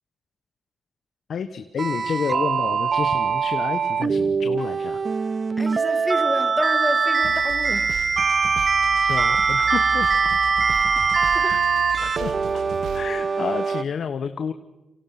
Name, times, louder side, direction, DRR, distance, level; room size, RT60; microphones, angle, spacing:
voice 1, 1.3-5.0 9.0-10.3 11.4-11.6 12.0-12.6 12.9-14.5, left 7 dB, 70° left, 1.2 m, -30 dB
sound 1, 1.8-13.8, right 5 dB, 50° right, 0.7 m, -22 dB
voice 2, 5.6-7.9 10.8-11.6, left 1 dB, 10° left, 2.2 m, -30 dB
sound 2, 7.2-13.1, right 8 dB, 80° right, 1.2 m, -37 dB
28.5 x 26.0 x 6.0 m
cardioid pair, 60°, 0 cm